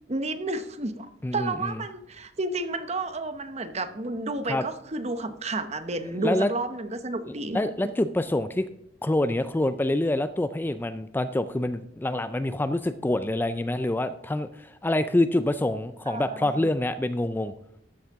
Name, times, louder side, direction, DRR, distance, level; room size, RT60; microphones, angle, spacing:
voice 1, 0.1-1.1 1.3-7.6 16.1-16.7, right 2 dB, 40° right, 10 dB, 0.9 m, -31 dB
voice 2, 1.2-1.8 4.5-4.6 6.2-6.5 7.5-8.7 9.0-17.5, left 1 dB, 10° left, 11 dB, 0.4 m, -26 dB
13.0 x 8.7 x 3.6 m, 0.75 s
head